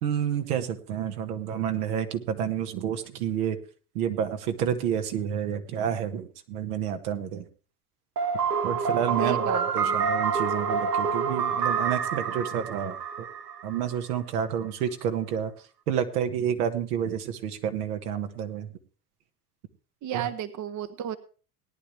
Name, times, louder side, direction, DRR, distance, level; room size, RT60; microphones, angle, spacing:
voice 1, 0.0-3.6 4.0-7.4 8.6-13.3 13.6-15.5 15.9-18.7 20.1-20.3, right 8 dB, 70° right, 6 dB, 1.7 m, -29 dB
sound 1, 8.2-14.0, right 6 dB, 90° right, 1.2 m, -27 dB
voice 2, 9.2-10.1 20.0-21.2, right 10 dB, 40° right, 12 dB, 1.0 m, -33 dB
18.5 x 10.5 x 3.4 m, 0.37 s
hypercardioid pair, 80°, 47 cm